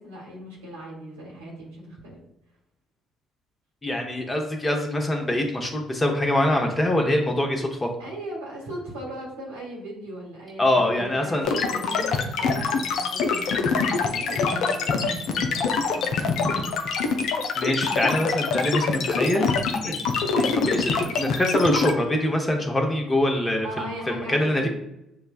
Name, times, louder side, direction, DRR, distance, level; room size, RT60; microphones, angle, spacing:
voice 1, 0.0-2.2 8.0-17.1 23.6-24.7, right 1 dB, 85° right, -4 dB, 1.4 m, -38 dB
voice 2, 3.8-7.9 10.6-11.5 17.6-19.5 19.8-20.0 20.4-24.7, left 1 dB, 25° left, 2 dB, 0.9 m, -24 dB
sound 1, 11.4-21.9, left 5 dB, 65° left, 0.4 m, -24 dB
6.5 x 2.2 x 2.4 m, 0.83 s
hypercardioid pair, 50°, 0 cm